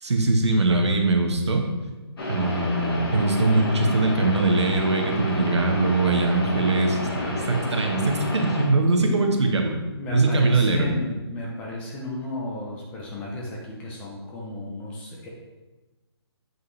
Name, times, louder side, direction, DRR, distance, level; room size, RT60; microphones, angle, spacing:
voice 1, 0.0-1.7 2.3-9.8 10.1-10.9, right 2 dB, 85° right, 3 dB, 1.3 m, -22 dB
sound 1, 2.2-8.7, left 1 dB, 60° left, 1.8 m, -30 dB
voice 2, 9.0-9.3 10.0-15.3, left 2 dB, 10° left, -2 dB, 0.6 m, -34 dB
7.7 x 5.2 x 3.2 m, 1.2 s
hypercardioid pair, 165°, 14 cm